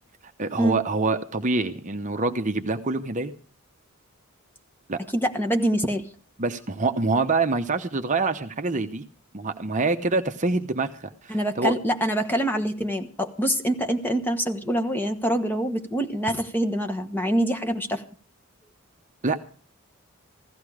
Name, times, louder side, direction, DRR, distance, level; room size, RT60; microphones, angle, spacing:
voice 1, 0.4-3.3 4.9-5.0 6.4-9.0 9.3-11.7 19.2-19.4, right 3 dB, 35° right, 7 dB, 0.8 m, -25 dB
voice 2, 5.1-6.1 11.3-18.0, right 1 dB, 10° left, 6 dB, 1.2 m, -25 dB
15.5 x 14.0 x 4.9 m, 0.40 s
head